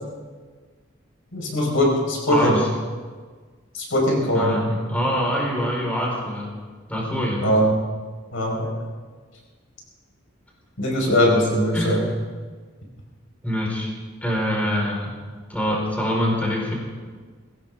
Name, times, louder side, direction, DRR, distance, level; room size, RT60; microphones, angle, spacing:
voice 1, 1.3-2.6 3.7-4.6 7.4-7.8 8.3-8.7 10.8-12.0, equal, 85° left, -1 dB, 4.8 m, -20 dB
voice 2, 2.3-2.6 4.3-6.5 6.9-7.5 11.7-12.0 13.4-13.9 14.2-15.1 15.5-16.7, equal, 10° left, -3 dB, 4.3 m, -24 dB
21.0 x 16.5 x 3.6 m, 1.5 s
head